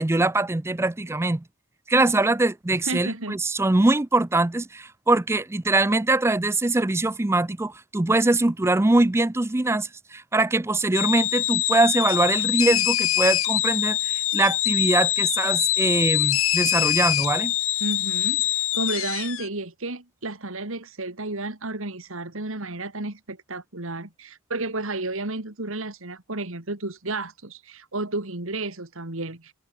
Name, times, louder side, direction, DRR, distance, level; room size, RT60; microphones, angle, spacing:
voice 1, 0.0-1.4 1.9-17.5, right 2 dB, 10° right, 0.5 m, -22 dB
voice 2, 2.8-3.4 17.8-29.5, right 2 dB, 65° right, 2.7 m, -32 dB
sound 1, 10.9-19.5, left 15 dB, 65° left, 1.8 m, -24 dB
head